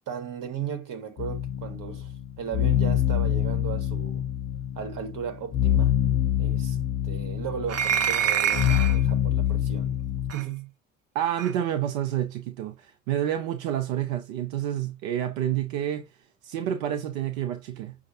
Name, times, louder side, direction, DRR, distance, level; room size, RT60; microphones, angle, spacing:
voice 1, 0.1-4.2 4.7-6.0 6.4-6.8 7.0-10.0 10.3-10.7, right 8 dB, 55° right, 1.5 m, -36 dB
sound 1, 1.2-10.3, left 11 dB, 35° left, 0.8 m, -26 dB
sound 2, 7.7-9.0 10.3-10.4 11.4-11.5, right 8 dB, 40° right, 0.8 m, -26 dB
voice 2, 11.1-16.1 16.4-17.9, right 11 dB, 80° right, 0.7 m, -29 dB
6.2 x 2.4 x 2.8 m
hypercardioid pair, 65°, 40 cm